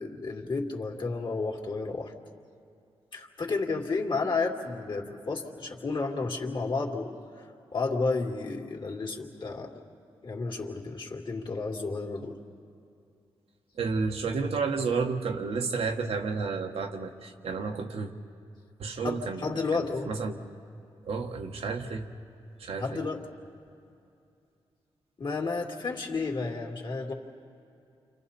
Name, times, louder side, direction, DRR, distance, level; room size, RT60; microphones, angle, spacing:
voice 1, 0.0-2.1 3.1-7.2 7.7-9.7 10.2-12.4 19.0-20.1 22.8-23.3 25.2-27.1, left 3 dB, 55° left, 1 dB, 2.4 m, -32 dB
voice 2, 13.8-18.1 18.8-20.4 21.0-22.1 22.6-23.0, right 4 dB, 85° right, 3 dB, 1.4 m, -31 dB
30.0 x 26.5 x 4.3 m, 2.6 s
cardioid pair, 75°, 10 cm